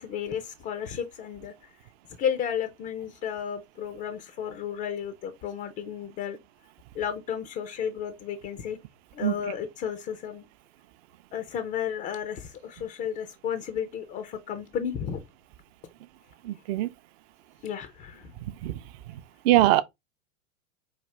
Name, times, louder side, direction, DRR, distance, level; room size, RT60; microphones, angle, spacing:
voice 1, 0.0-1.7 2.2-6.4 6.9-8.8 9.1-10.4 11.3-15.2 17.6-18.3, left 8 dB, 20° left, 0.3 m, -33 dB
voice 2, 16.5-16.9 18.6-18.7 19.5-19.8, right 14 dB, 50° right, 0.5 m, -21 dB
4.9 x 2.4 x 3.1 m
hypercardioid pair, 105°, 41 cm